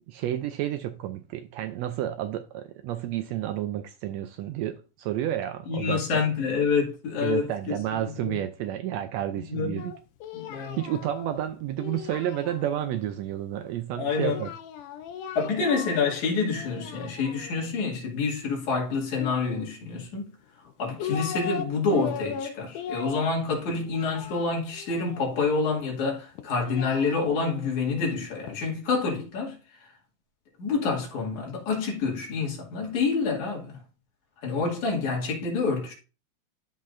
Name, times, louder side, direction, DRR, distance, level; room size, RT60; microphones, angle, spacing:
voice 1, 0.1-6.2 7.2-9.9 10.8-14.5, right 12 dB, 85° right, 1.5 m, -31 dB
voice 2, 5.7-8.4 9.5-9.8 10.3-10.8 14.0-14.4 15.4-20.3 20.8-29.6 30.6-33.8 34.4-35.9, left 4 dB, 70° left, 3.6 m, -27 dB
Singing, 9.8-13.0 14.2-16.2 16.5-17.7 19.1-20.1 20.7-21.7 21.9-25.6 26.4-28.6, left 8 dB, 85° left, 2.4 m, -38 dB
12.5 x 5.4 x 2.6 m
omnidirectional pair, 3.6 m